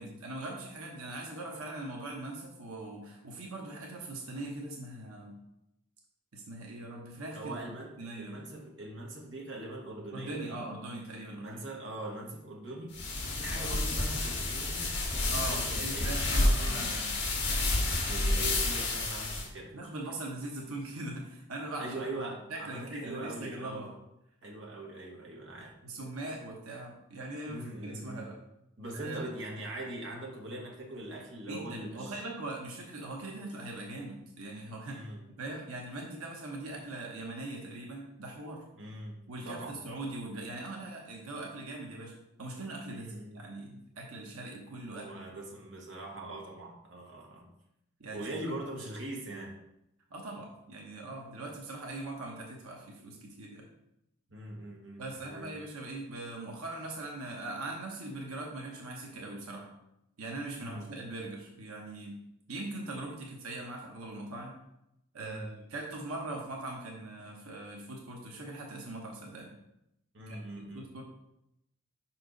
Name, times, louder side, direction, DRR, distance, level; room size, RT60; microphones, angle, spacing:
voice 1, 0.0-5.4 6.3-7.6 8.0-8.4 10.1-11.6 13.5-13.8 15.3-17.1 18.8-19.2 19.7-21.9 22.5-23.9 25.8-28.4 28.9-29.3 31.5-35.0 35.4-38.7 39.3-42.1 42.4-45.4 48.0-48.5 50.1-53.7 55.0-59.7 60.2-62.2 62.5-64.6 65.1-69.5 70.3-71.0, right 2 dB, 90° right, 0 dB, 1.1 m, -41 dB
voice 2, 7.3-10.6 11.3-12.9 13.3-16.9 18.1-19.7 21.8-23.9 24.4-25.7 27.5-28.3 28.8-32.2 34.9-35.2 38.7-39.2 39.4-39.7 42.9-43.4 44.9-47.5 48.1-49.5 54.3-55.5 60.6-60.9 65.2-65.5 70.1-70.8, right 1 dB, 55° right, -1 dB, 1.4 m, -42 dB
sound 1, 12.9-19.5, left 2 dB, 50° left, 1.8 m, -30 dB
5.5 x 4.5 x 5.1 m, 0.83 s
head